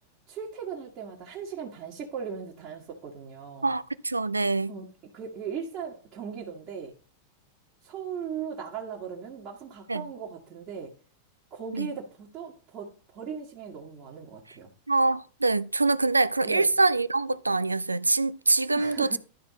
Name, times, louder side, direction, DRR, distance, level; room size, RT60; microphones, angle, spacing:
voice 1, 0.3-3.7 4.7-4.9 5.1-6.9 7.8-10.9 11.5-14.7 16.4-16.7 18.7-19.2, right 7 dB, 35° right, 1.8 m, -38 dB
voice 2, 3.6-4.7 9.9-10.0 11.7-11.9 14.9-19.2, right 3 dB, 80° right, 0.4 m, -24 dB
12.0 x 4.2 x 4.2 m
figure-of-eight pair, 90°, 0 cm